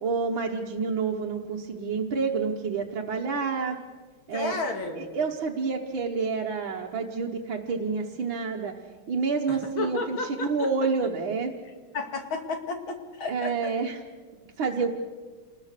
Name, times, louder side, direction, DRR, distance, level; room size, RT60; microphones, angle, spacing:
voice 1, 0.0-3.8 4.3-4.6 5.0-8.8 9.1-11.5 13.3-14.0 14.6-14.9, right 5 dB, 65° right, -1 dB, 2.0 m, -28 dB
voice 2, 4.3-5.1 9.5-10.7 11.9-13.7, left 3 dB, 65° left, 4 dB, 3.1 m, -32 dB
27.5 x 20.5 x 6.7 m, 1.4 s
omnidirectional pair, 2.4 m